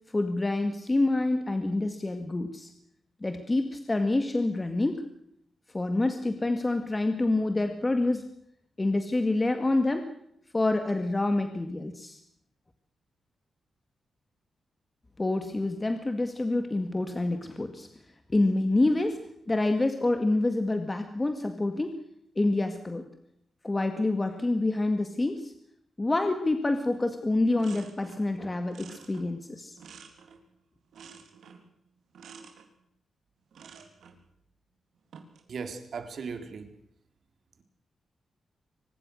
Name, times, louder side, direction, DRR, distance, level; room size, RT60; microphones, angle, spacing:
voice 1, 0.1-2.7 3.2-5.0 5.7-8.3 8.8-10.1 10.5-12.2 15.2-17.9 18.3-19.2 19.5-22.0 22.4-23.1 23.6-25.5 26.0-29.7, left 2 dB, 20° left, 7 dB, 2.0 m, -27 dB
sound 1, 26.9-27.1 27.3-28.3 28.7-30.5 30.9-31.7 32.1-32.7 33.5-34.2 35.0-35.5, right 6 dB, 85° right, 3.9 m, -50 dB
voice 2, 35.5-36.7, right 5 dB, 60° right, 7 dB, 3.7 m, -37 dB
24.0 x 20.5 x 6.5 m, 0.73 s
wide cardioid pair, 125°, 0 cm